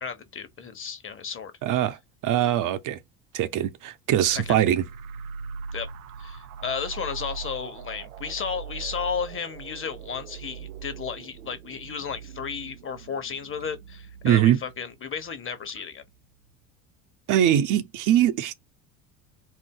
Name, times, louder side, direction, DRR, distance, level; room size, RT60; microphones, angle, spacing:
voice 1, 0.0-1.5 4.3-4.7 5.7-5.9 6.2-16.0, left 6 dB, 30° left, 1.1 m, -33 dB
voice 2, 1.6-3.0 3.3-4.8 14.2-14.6 17.3-18.5, right 11 dB, 50° right, 0.7 m, -22 dB
sound 1, 4.2-15.6, right 6 dB, 90° right, 0.5 m, -41 dB
4.4 x 2.0 x 3.7 m
hypercardioid pair, 70°, 42 cm